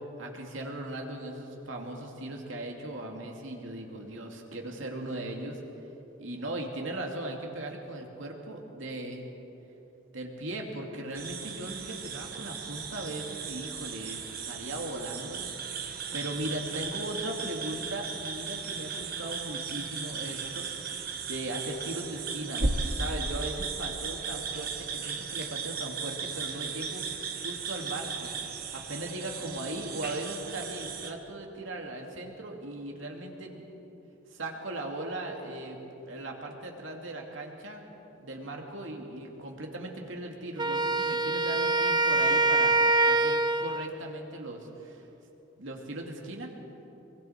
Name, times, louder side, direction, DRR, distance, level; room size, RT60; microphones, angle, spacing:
voice 1, 0.2-5.6 6.2-9.3 10.1-15.5 16.1-20.7 21.3-22.6 23.0-27.1 27.4-28.3 28.7-33.6 34.3-35.8 36.1-37.8 38.2-42.7 43.1-45.0 45.6-46.5, right 1 dB, 80° right, 1 dB, 2.6 m, -38 dB
sound 1, 11.1-31.1, right 5 dB, 50° right, 1.5 m, -36 dB
Wind instrument woodwind instrument, 40.6-43.9, right 3 dB, 20° right, 0.5 m, -25 dB
25.0 x 23.5 x 4.5 m, 2.9 s
head